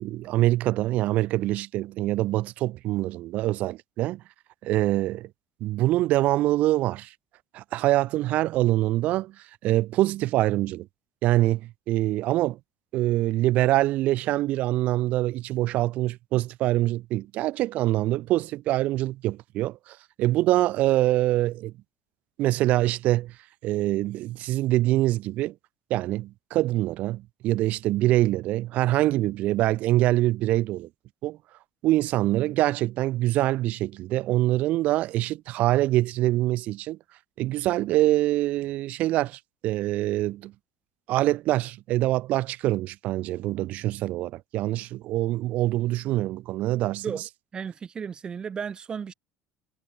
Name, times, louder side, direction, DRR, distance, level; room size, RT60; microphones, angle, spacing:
voice 1, 0.0-4.2 4.6-5.3 5.6-7.1 7.5-9.3 9.6-10.9 11.2-12.6 12.9-21.7 22.4-23.3 23.6-25.5 25.9-30.9 31.2-31.4 31.8-37.0 37.4-40.5 41.1-47.1, right 16 dB, 60° right, 0.9 m, -24 dB
voice 2, 47.5-49.1, right 6 dB, 30° right, 1.7 m, -34 dB
supercardioid pair, 105°, 3 cm